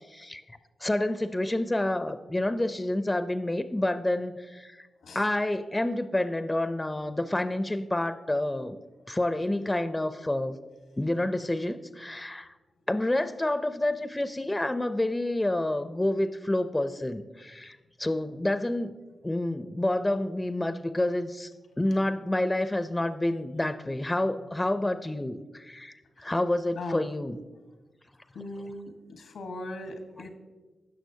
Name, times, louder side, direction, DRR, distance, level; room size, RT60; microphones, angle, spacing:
voice 1, 0.1-0.4 0.8-4.9 5.1-8.8 9.1-10.6 11.0-12.5 12.9-18.9 19.2-21.5 21.8-27.4, left 1 dB, 20° left, 11 dB, 0.5 m, -28 dB
voice 2, 28.3-30.3, left 2 dB, 85° left, 6 dB, 1.2 m, -39 dB
16.0 x 6.2 x 2.8 m, 1.2 s
cardioid pair, 50°, 0 cm